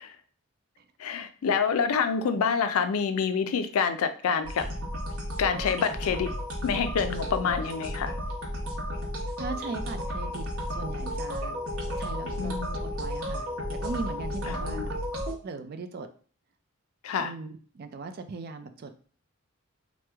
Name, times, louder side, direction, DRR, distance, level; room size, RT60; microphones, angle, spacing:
voice 1, 1.0-4.7 5.4-6.3 6.6-8.1 12.4-12.7 14.5-14.9 17.0-17.3, left 6 dB, 85° left, 9 dB, 0.4 m, -27 dB
sound 1, 4.4-15.4, equal, 90° right, 0.9 m, -33 dB
voice 2, 9.4-11.6 12.0-12.6 12.9-13.5 13.8-14.9 15.4-16.1 17.2-18.9, right 3 dB, 45° right, 8 dB, 0.4 m, -38 dB
3.0 x 2.0 x 3.4 m, 0.42 s
head